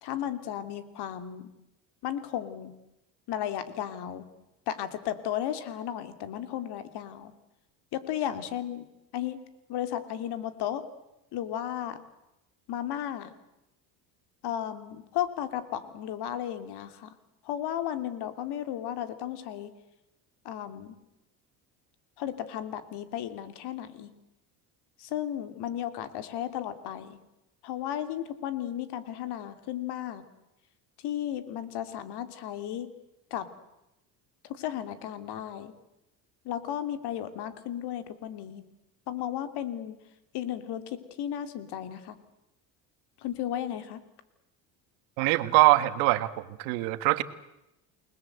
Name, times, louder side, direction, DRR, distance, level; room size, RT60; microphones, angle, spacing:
voice 1, 0.0-1.5 2.0-2.7 3.3-4.3 4.7-7.3 7.9-8.9 9.1-9.4 9.7-10.8 11.3-12.0 12.7-13.3 14.4-17.1 17.4-19.7 20.4-21.0 22.2-24.1 25.0-27.2 27.6-30.2 31.0-32.9 33.3-33.5 34.5-35.7 36.4-38.6 39.1-40.0 40.3-42.2 43.2-44.0, left 11 dB, 65° left, 10 dB, 2.9 m, -34 dB
voice 2, 45.2-46.3 46.6-47.2, right 19 dB, 90° right, 13 dB, 1.6 m, -22 dB
29.0 x 20.5 x 8.0 m, 0.90 s
cardioid pair, 110°, 43 cm